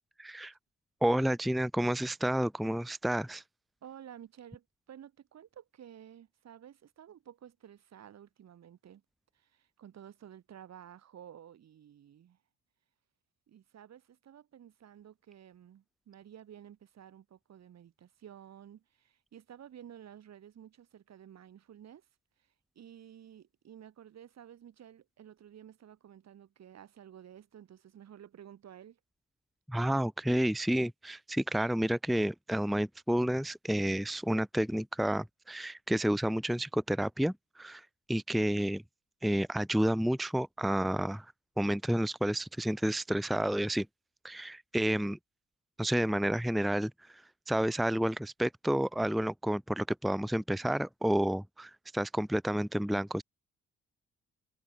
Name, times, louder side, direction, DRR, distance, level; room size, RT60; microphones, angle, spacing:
voice 1, 0.2-0.5 1.0-3.4 29.7-38.8 39.2-41.3 41.6-43.9 44.2-45.2 45.8-47.2 47.5-53.2, equal, ahead, 0.7 m, -30 dB
voice 2, 3.8-9.0 9.3-12.4 13.5-22.0 22.8-29.0, right 10 dB, 60° right, 2.5 m, -53 dB
cardioid pair, 90°, 30 cm